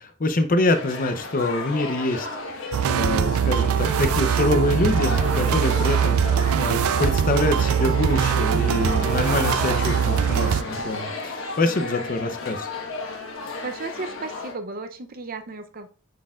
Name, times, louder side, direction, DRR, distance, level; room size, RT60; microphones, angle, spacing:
voice 1, 0.0-12.7, left 2 dB, 40° left, 9 dB, 0.7 m, -25 dB
sound 1, 0.7-14.5, left 3 dB, 65° left, 1.3 m, -33 dB
sound 2, 2.7-10.6, right 8 dB, 90° right, 0.3 m, -22 dB
voice 2, 13.6-15.9, right 3 dB, 45° right, 7 dB, 0.6 m, -35 dB
9.5 x 4.3 x 2.4 m, 0.38 s
head